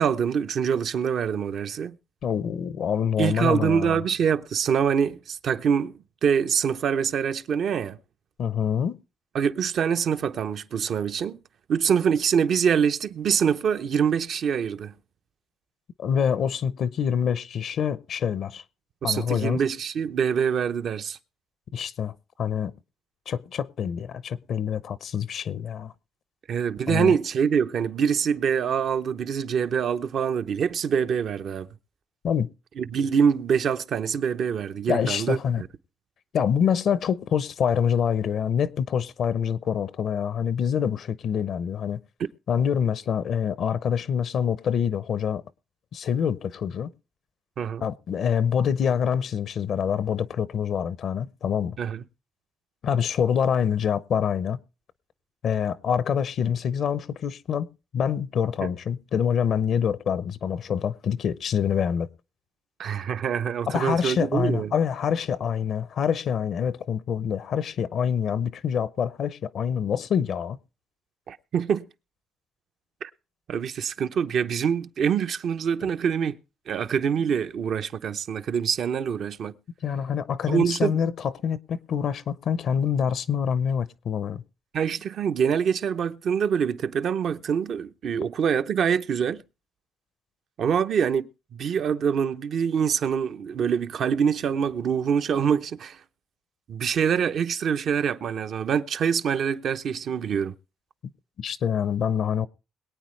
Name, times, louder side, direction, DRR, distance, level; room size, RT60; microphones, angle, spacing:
voice 1, 0.0-2.0 3.2-5.9 6.2-8.0 9.3-11.4 11.7-14.9 19.0-21.2 26.5-31.7 32.8-35.7 47.6-47.9 51.8-52.0 58.6-58.7 62.8-64.7 71.3-71.9 73.0-73.1 73.5-76.4 76.7-79.6 80.5-81.0 84.7-89.4 90.6-96.0 96.7-100.6, right 7 dB, 65° right, 0.7 m, -25 dB
voice 2, 2.2-4.0 8.4-9.0 16.0-18.6 19.0-19.6 21.7-22.1 22.4-22.7 23.3-25.9 26.9-27.2 32.2-32.5 34.9-35.6 36.3-42.0 42.5-45.4 45.9-46.9 47.8-51.8 52.8-54.6 55.4-57.7 57.9-62.1 63.7-70.6 79.8-84.4 101.4-102.5, left 7 dB, 65° left, 0.6 m, -26 dB
22.0 x 8.9 x 3.2 m
cardioid pair, 90°, 0 cm